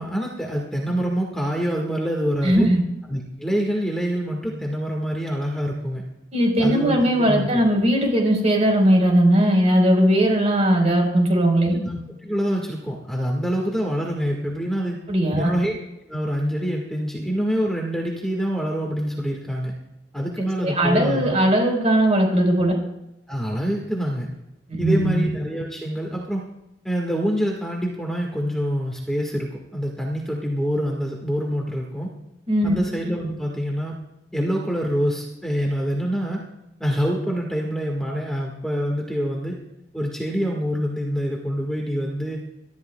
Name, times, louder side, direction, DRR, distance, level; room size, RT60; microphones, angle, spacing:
voice 1, 0.0-2.7 3.1-6.0 6.6-7.5 11.7-15.0 15.4-15.8 16.1-19.7 20.1-21.4 23.3-24.3 24.8-26.4 26.8-32.1 32.6-33.9 34.3-36.4 36.8-39.6 39.9-42.4, equal, 5° left, -1 dB, 1.7 m, -26 dB
voice 2, 2.4-2.8 6.3-11.7 15.1-15.6 20.4-22.7 24.8-25.1 32.5-32.8, right 1 dB, 40° right, 1 dB, 4.5 m, -19 dB
27.0 x 13.0 x 2.3 m, 0.93 s
head